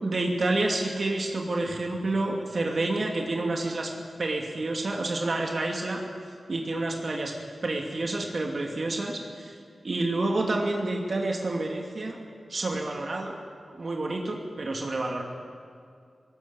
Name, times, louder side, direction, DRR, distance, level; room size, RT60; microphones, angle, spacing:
voice 1, 0.0-3.9 4.2-6.0 6.5-7.3 7.6-9.6 9.8-12.2 12.5-13.4 13.7-15.2, right 2 dB, 60° right, 1 dB, 2.6 m, -29 dB
19.0 x 17.5 x 8.9 m, 2.3 s
cardioid pair, 60°, 0 cm